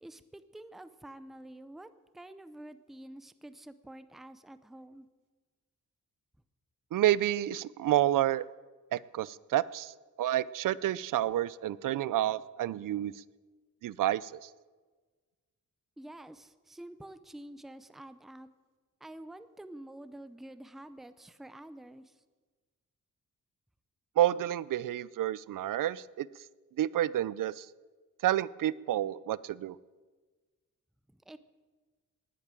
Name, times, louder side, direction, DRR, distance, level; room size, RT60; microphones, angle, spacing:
voice 1, 0.0-1.9 2.1-5.1 16.0-18.5 19.0-22.1 31.3-31.4, right 1 dB, ahead, 13 dB, 0.5 m, -48 dB
voice 2, 6.9-8.4 8.9-9.9 10.2-13.1 13.8-14.5 24.2-26.3 26.8-27.7 28.2-29.8, right 13 dB, 75° right, 19 dB, 0.5 m, -29 dB
19.0 x 8.4 x 7.5 m, 1.4 s
wide cardioid pair, 165°, 32 cm